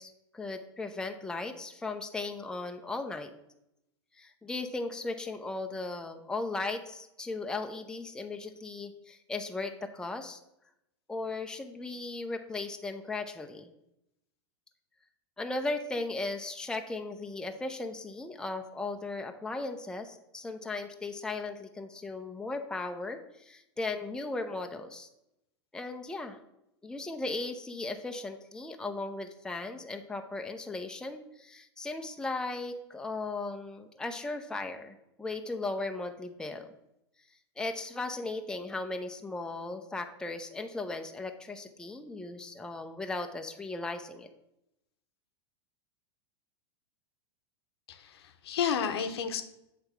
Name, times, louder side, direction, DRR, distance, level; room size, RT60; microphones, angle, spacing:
voice 1, 0.0-3.3 4.2-10.4 11.1-13.7 15.4-25.1 25.7-26.4 26.8-36.7 37.6-44.3, left 3 dB, 5° left, 5 dB, 0.6 m, -37 dB
voice 2, 47.9-49.4, left 7 dB, 75° left, 8 dB, 0.8 m, -31 dB
7.9 x 3.4 x 5.7 m, 0.86 s
hypercardioid pair, 110°, 14 cm